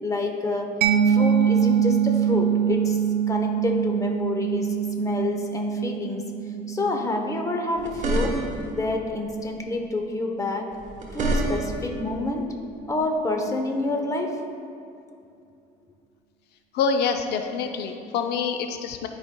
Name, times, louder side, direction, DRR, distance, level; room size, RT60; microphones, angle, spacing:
voice 1, 0.0-0.7 1.1-3.0 3.3-6.3 6.7-8.4 8.7-10.7 11.1-12.5 12.9-14.4, left 2 dB, 20° left, 2 dB, 0.8 m, -28 dB
Mallet percussion, 0.8-8.2, right 8 dB, 80° right, 0.5 m, -24 dB
sound 1, 7.8-8.7 10.7-11.9, right 2 dB, 45° right, 1.2 m, -27 dB
voice 2, 16.7-19.1, left 5 dB, 75° left, 5 dB, 0.5 m, -26 dB
12.0 x 5.1 x 2.2 m, 2.6 s
cardioid pair, 110°, 17 cm